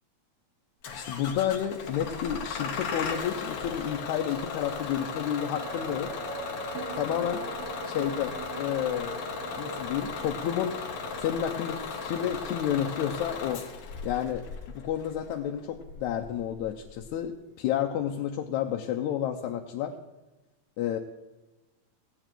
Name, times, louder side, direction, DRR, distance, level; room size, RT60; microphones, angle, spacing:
Bus / Engine starting, 0.8-17.1, left 5 dB, 60° left, 1.9 m, -37 dB
voice 1, 0.9-6.1 6.9-7.5 7.9-10.8 11.2-13.6 14.0-19.9 20.8-21.0, left 10 dB, 85° left, 3 dB, 2.1 m, -31 dB
sound 1, 5.5-15.1 15.4-15.5, right 4 dB, 90° right, 2.5 m, -43 dB
16.5 x 8.9 x 4.5 m, 1.1 s
omnidirectional pair, 3.3 m